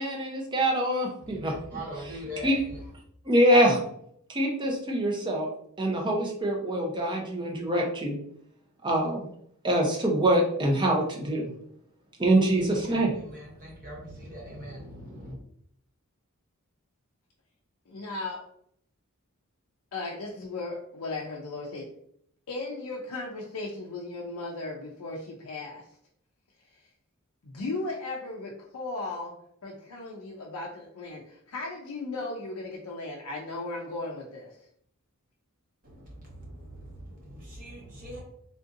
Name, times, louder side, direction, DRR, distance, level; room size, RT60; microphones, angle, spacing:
voice 1, 0.0-1.5 2.4-2.6 3.3-3.8 4.3-5.5 5.8-8.2 8.8-9.3 9.6-11.5 12.2-13.1, right 1 dB, 20° right, 0 dB, 0.6 m, -24 dB
voice 2, 1.2-2.8 12.5-15.4 35.8-38.2, equal, 40° right, -3 dB, 1.0 m, -42 dB
voice 3, 17.9-18.4 19.9-21.9 22.5-25.8 27.4-29.3 29.6-34.6, left 2 dB, 75° left, -2 dB, 0.5 m, -36 dB
3.6 x 2.6 x 2.4 m, 0.69 s
head